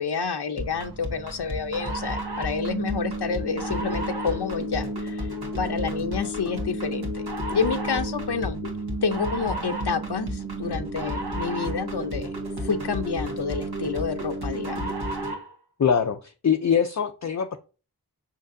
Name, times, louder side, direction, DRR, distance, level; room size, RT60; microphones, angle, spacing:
voice 1, 0.0-8.6 9.0-12.3 12.6-14.9, left 5 dB, 80° left, 0.7 m, -29 dB
sound 1, 0.6-15.5, right 1 dB, 70° right, 1.8 m, -31 dB
voice 2, 15.8-16.2 16.4-17.6, left 7 dB, 45° left, 0.5 m, -22 dB
6.5 x 5.8 x 2.6 m
wide cardioid pair, 45°, 39 cm